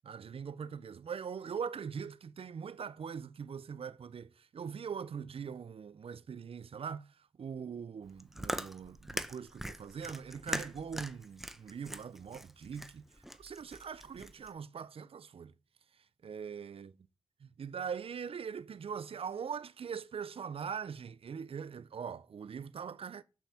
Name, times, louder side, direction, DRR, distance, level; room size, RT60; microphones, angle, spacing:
voice 1, 0.0-15.5 15.9-16.9 17.4-23.2, right 7 dB, 75° right, 0.6 m, -42 dB
Chewing mastication, 8.0-14.5, equal, 5° right, 0.8 m, -42 dB
7.1 x 5.9 x 7.0 m
cardioid pair, 45°, 10 cm